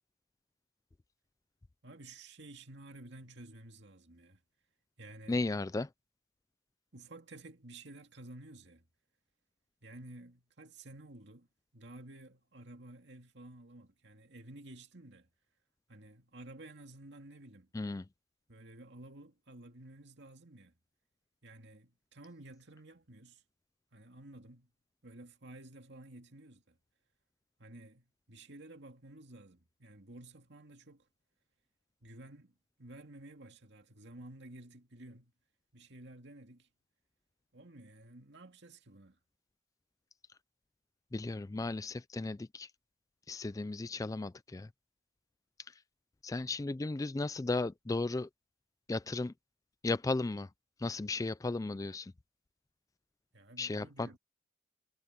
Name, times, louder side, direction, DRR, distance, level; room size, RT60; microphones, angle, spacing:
voice 1, 1.8-4.4 5.0-5.4 6.9-8.8 9.8-15.3 15.9-17.7 18.5-20.7 21.4-23.4 23.9-24.7 25.0-26.8 27.6-31.1 32.0-35.3 35.7-36.7 37.5-39.2 53.3-54.2, right 2 dB, 60° right, 2.4 m, -52 dB
voice 2, 5.3-5.9 17.7-18.1 41.1-42.7 43.3-44.7 45.7-45.8 46.2-48.3 48.9-49.3 49.8-50.5 50.8-52.1 53.6-54.2, left 3 dB, 15° left, 0.3 m, -35 dB
head